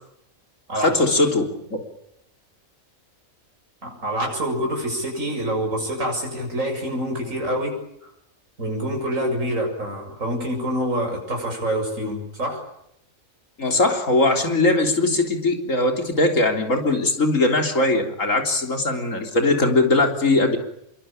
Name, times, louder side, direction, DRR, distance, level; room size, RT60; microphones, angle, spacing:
voice 1, 0.8-1.5 1.7-1.8 13.6-20.6, left 2 dB, 65° left, 4 dB, 4.1 m, -20 dB
voice 2, 3.8-8.1 8.6-12.7, right 1 dB, 65° right, 1 dB, 7.7 m, -26 dB
26.5 x 23.5 x 8.9 m, 0.76 s
omnidirectional pair, 1.4 m